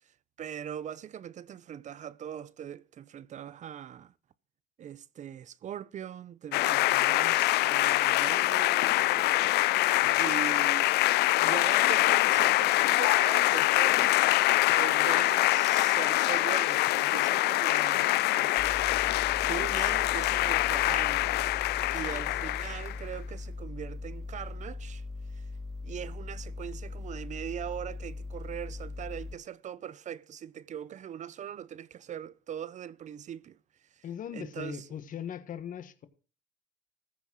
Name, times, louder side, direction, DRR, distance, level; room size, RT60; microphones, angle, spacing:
voice 1, 0.4-4.1 4.8-9.9 10.2-11.0 11.4-14.1 14.7-18.7 19.5-21.4 21.9-25.0 25.3-25.4 25.8-33.6 34.0-34.1 34.3-34.8, right 9 dB, 45° right, 0.6 m, -41 dB
sound 1, 6.5-23.0, left 18 dB, 75° left, 0.4 m, -25 dB
voice 2, 10.0-10.3 22.0-22.5 34.0-36.1, left 8 dB, 50° left, 1.5 m, -40 dB
sound 2, 18.6-29.3, left 3 dB, ahead, 2.6 m, -40 dB
14.5 x 6.0 x 6.2 m
cardioid pair, 110°, 17 cm